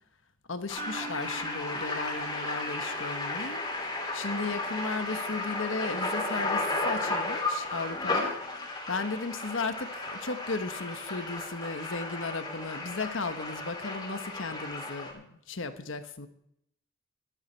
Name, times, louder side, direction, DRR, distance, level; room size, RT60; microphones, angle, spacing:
voice 1, 0.5-3.6 4.1-16.3, left 3 dB, 65° left, 9 dB, 1.2 m, -35 dB
sound 1, 0.7-15.1, left 2 dB, 20° left, 2.8 m, -34 dB
sound 2, 0.8-4.8, right 4 dB, 45° right, 1.2 m, -47 dB
13.5 x 13.0 x 4.5 m, 0.74 s
head